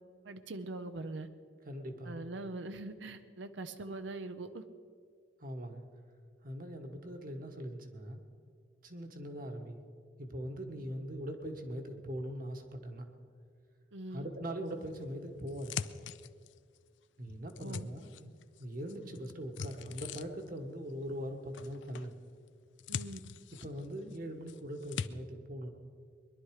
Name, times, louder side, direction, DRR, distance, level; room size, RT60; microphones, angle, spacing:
voice 1, 0.2-1.3 2.0-4.6 13.9-14.3 17.6-17.9 22.9-23.2, right 2 dB, 75° right, 10 dB, 0.7 m, -42 dB
voice 2, 1.6-2.2 5.4-5.8 6.4-8.2 8.8-9.8 10.2-13.1 14.1-15.8 17.2-22.1 23.6-25.7, equal, 50° right, 4 dB, 1.5 m, -41 dB
sound 1, 14.9-16.8 17.2-18.6 18.9-20.6 21.5-22.1 22.5-24.2 24.5-25.1, left 7 dB, 75° left, 0.4 m, -42 dB
21.0 x 11.5 x 4.9 m, 2.1 s
head